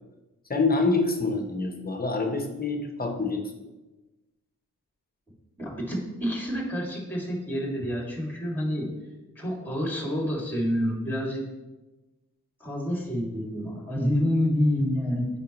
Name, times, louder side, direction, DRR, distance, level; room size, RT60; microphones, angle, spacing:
voice 1, 0.5-3.7, left 3 dB, 30° left, 4 dB, 0.9 m, -26 dB
voice 2, 5.6-8.9 9.4-11.4 12.6-15.3, equal, 5° left, -2 dB, 2.1 m, -28 dB
8.8 x 5.2 x 3.0 m, 1.1 s
wide cardioid pair, 110°, 32 cm